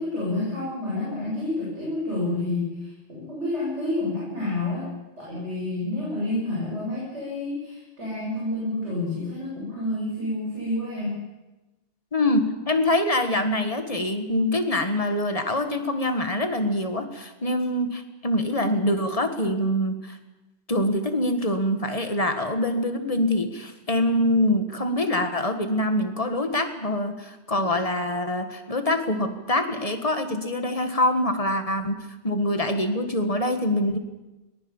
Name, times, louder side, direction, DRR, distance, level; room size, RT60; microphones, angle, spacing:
voice 1, 0.0-4.9 5.2-11.2, left 2 dB, 85° right, -7 dB, 8.4 m, -29 dB
voice 2, 12.1-20.2 20.7-34.0, left 1 dB, 30° left, 7 dB, 1.9 m, -25 dB
22.0 x 20.0 x 7.3 m, 1.1 s
omnidirectional pair, 1.1 m